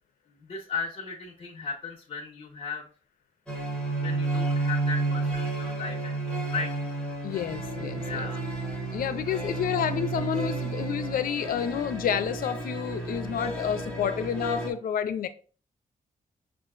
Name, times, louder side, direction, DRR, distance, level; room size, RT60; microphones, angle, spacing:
voice 1, 0.3-2.9 3.8-6.7 8.0-8.5 9.3-9.4, left 4 dB, 45° left, 0.8 m, -36 dB
sound 1, 3.5-14.7, right 3 dB, 5° left, 1.1 m, -31 dB
voice 2, 7.2-8.3 8.9-15.3, left 9 dB, 80° left, 0.5 m, -29 dB
6.1 x 2.4 x 2.4 m
wide cardioid pair, 130°, 14 cm